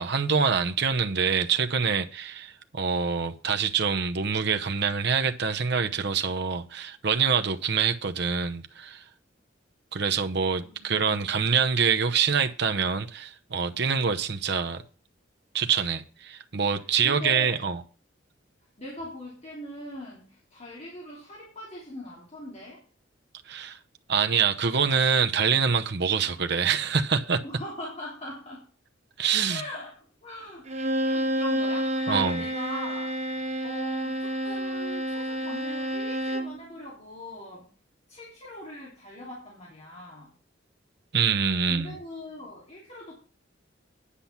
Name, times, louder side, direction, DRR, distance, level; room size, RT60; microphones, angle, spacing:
voice 1, 0.0-9.0 9.9-14.8 15.5-17.8 23.5-23.8 24.1-27.4 29.2-29.6 32.1-32.4 41.1-41.9, right 6 dB, 60° right, 0.8 m, -25 dB
voice 2, 10.6-11.3 16.8-17.7 18.8-22.8 27.4-28.7 29.5-30.7 31.0-37.7 38.1-40.3 41.6-43.1, left 1 dB, 35° left, 3.1 m, -41 dB
Bowed string instrument, 30.7-36.6, right 1 dB, 35° right, 1.3 m, -29 dB
10.0 x 5.9 x 7.1 m
head